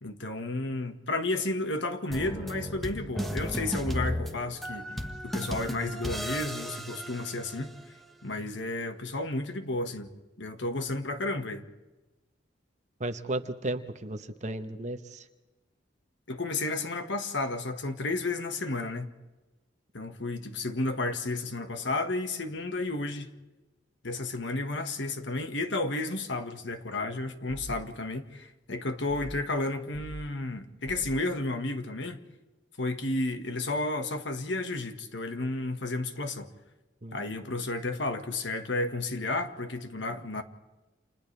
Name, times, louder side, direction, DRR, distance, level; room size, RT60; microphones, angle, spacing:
voice 1, 0.0-7.7 8.2-10.1 10.4-11.6 16.3-19.1 19.9-23.3 24.0-32.2 32.8-36.5 37.1-40.4, left 2 dB, 70° left, 1.7 m, -32 dB
sound 1, 2.1-7.9, equal, ahead, 1.6 m, -35 dB
voice 2, 13.0-15.3 37.0-37.3, right 2 dB, 40° right, 1.1 m, -34 dB
sound 2, 27.5-27.8 29.1-29.4 29.9-30.2 30.9-31.2, right 2 dB, 35° left, 7.4 m, -42 dB
30.0 x 28.0 x 3.4 m
head